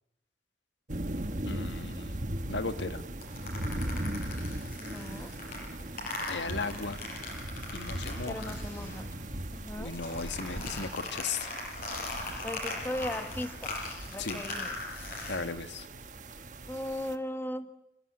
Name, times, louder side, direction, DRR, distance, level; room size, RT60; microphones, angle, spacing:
sound 1, 0.9-17.2, right 1 dB, 45° right, 1.5 m, -39 dB
voice 1, 1.4-2.2 2.5-3.0 6.2-7.0 7.7-8.5 9.8-11.5 14.2-14.4 15.3-15.8, left 4 dB, 90° left, 9 dB, 1.7 m, -36 dB
sound 2, 3.2-9.2 9.5-15.4, left 2 dB, 50° left, 6.9 m, -40 dB
voice 2, 4.8-5.3 8.3-9.1 9.5-9.9 12.4-13.7 14.1-14.8 16.7-17.7, left 1 dB, 10° left, 8 dB, 1.5 m, -37 dB
27.5 x 18.5 x 9.8 m, 0.89 s
head